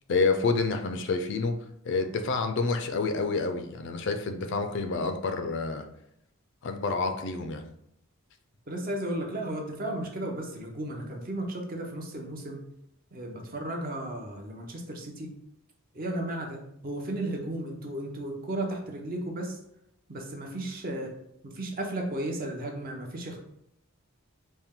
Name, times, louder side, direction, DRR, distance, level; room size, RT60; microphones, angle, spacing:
voice 1, 0.1-1.6 1.9-5.8 6.6-7.6, left 4 dB, 55° left, 7 dB, 0.4 m, -28 dB
voice 2, 8.7-12.6 13.1-15.3 15.9-19.6 20.1-21.1 21.4-23.4, right 1 dB, 40° right, 1 dB, 0.6 m, -34 dB
4.3 x 2.1 x 3.5 m, 0.76 s
head